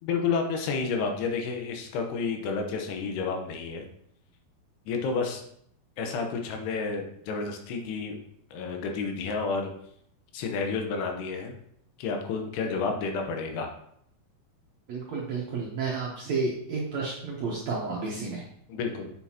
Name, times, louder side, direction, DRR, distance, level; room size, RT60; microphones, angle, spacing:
voice 1, 0.0-3.8 4.9-5.4 6.0-8.2 8.5-9.7 10.3-11.6 12.0-13.7 18.7-19.1, left 4 dB, 85° left, 4 dB, 3.1 m, -30 dB
voice 2, 14.9-18.4, right 4 dB, 70° right, -4 dB, 1.7 m, -31 dB
7.7 x 7.1 x 2.9 m, 0.70 s
omnidirectional pair, 4.6 m